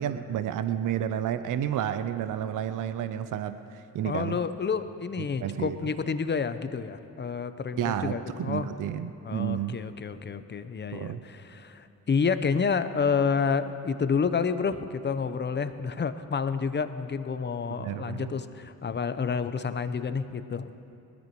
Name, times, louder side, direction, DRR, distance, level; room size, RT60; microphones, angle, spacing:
voice 1, 0.0-4.4 5.2-5.8 7.8-9.8 10.9-11.2 17.8-18.3, right 10 dB, 55° right, 11 dB, 0.7 m, -31 dB
voice 2, 4.0-8.7 9.2-20.7, left 5 dB, 30° left, 11 dB, 0.8 m, -29 dB
20.0 x 13.5 x 3.1 m, 2.7 s
supercardioid pair, 55°, 37 cm